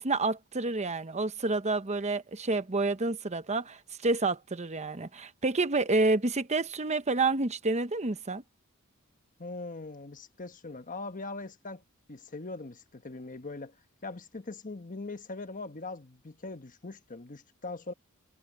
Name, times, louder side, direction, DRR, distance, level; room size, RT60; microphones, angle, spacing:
voice 1, 0.0-8.4, right 3 dB, 30° right, 1.0 m, -29 dB
voice 2, 9.4-11.8 12.1-13.8 14.0-17.9, left 3 dB, 40° left, 1.2 m, -41 dB
head